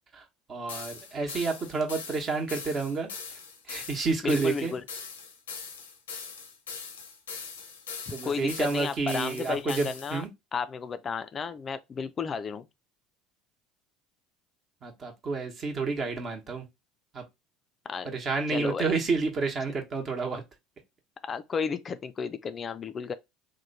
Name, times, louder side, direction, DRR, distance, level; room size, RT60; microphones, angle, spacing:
voice 1, 0.5-3.4 3.7-4.7 8.1-10.3 14.8-16.7 17.1-17.2 18.0-20.4, right 4 dB, 40° right, 1.0 m, -30 dB
sound 1, 0.7-10.2, left 5 dB, 85° left, 0.6 m, -41 dB
voice 2, 4.2-4.8 8.2-10.2 10.5-12.7 17.9-18.1 18.5-18.9 21.2-23.1, left 6 dB, 35° left, 0.3 m, -33 dB
3.0 x 2.2 x 3.9 m
hypercardioid pair, 70°, 0 cm